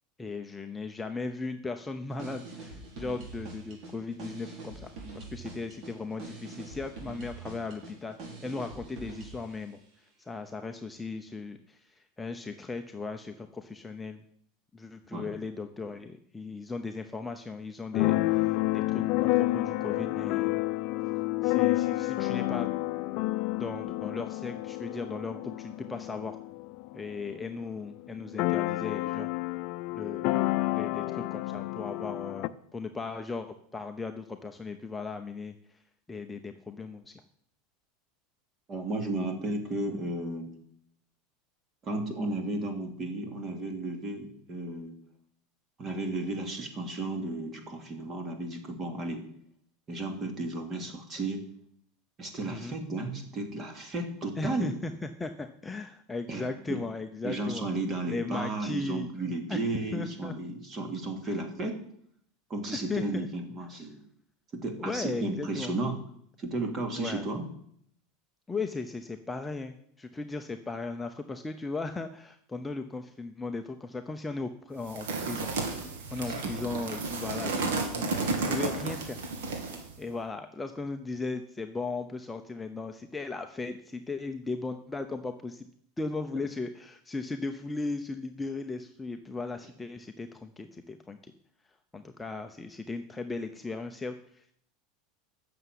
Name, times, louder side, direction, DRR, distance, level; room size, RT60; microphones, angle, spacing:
voice 1, 0.2-14.2 14.7-20.6 21.4-22.7 23.6-26.4 26.9-29.3 29.9-30.3 30.7-35.8 36.1-37.1 52.5-52.8 54.4-57.7 58.1-59.1 59.5-59.6 59.9-60.3 61.2-61.4 62.7-63.3 64.8-65.7 66.9-67.3 68.5-75.5 76.1-79.2 80.0-85.7 86.0-91.3 91.9-94.5, left 3 dB, 10° left, 5 dB, 0.8 m, -37 dB
sound 1, 2.1-9.5, right 3 dB, 50° right, 4.5 m, -44 dB
Keyboard (musical), 17.9-27.5 27.8-27.9 28.1-32.5, left 19 dB, 55° left, 0.6 m, -29 dB
voice 2, 38.7-40.5 41.8-44.9 45.8-49.2 49.9-51.4 52.2-54.7 56.3-56.8 57.2-61.8 62.5-64.0 64.5-66.0 66.4-67.4 76.2-76.6, right 2 dB, 30° right, 4 dB, 3.0 m, -34 dB
sound 2, 74.9-79.9, right 3 dB, 85° right, 2.6 m, -32 dB
11.0 x 6.9 x 9.6 m, 0.67 s
supercardioid pair, 125°, 0 cm